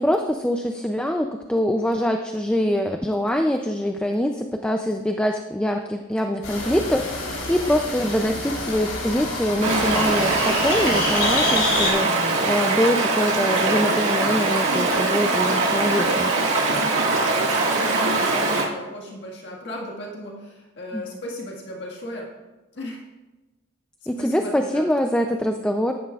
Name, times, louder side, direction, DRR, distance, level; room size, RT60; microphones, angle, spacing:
voice 1, 0.0-12.2 12.5-16.3 20.9-21.0 24.1-25.9, equal, 5° left, 4 dB, 0.4 m, -24 dB
sound 1, 6.4-11.9, left 2 dB, 85° left, 3.6 m, -28 dB
Stream, 9.6-18.6, right 3 dB, 85° right, 1.8 m, -22 dB
voice 2, 16.7-22.3 22.7-23.0 24.2-24.8, left 1 dB, 60° left, -2 dB, 1.8 m, -36 dB
14.0 x 10.5 x 2.4 m, 1.1 s
head